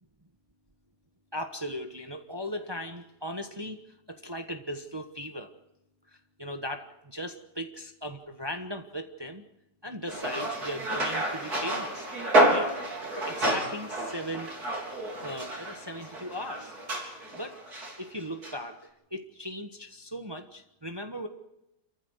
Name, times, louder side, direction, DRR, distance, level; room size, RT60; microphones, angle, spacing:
voice 1, 1.3-3.8 4.1-5.5 6.1-9.4 9.8-12.1 12.4-12.7 13.2-14.5 15.0-16.8 17.4-17.6 18.0-21.3, equal, 15° right, 5 dB, 1.1 m, -38 dB
sound 1, 10.1-18.0 18.4-18.5, right 1 dB, 65° right, 4.6 m, -29 dB
29.0 x 14.5 x 6.3 m, 0.89 s
omnidirectional pair, 1.7 m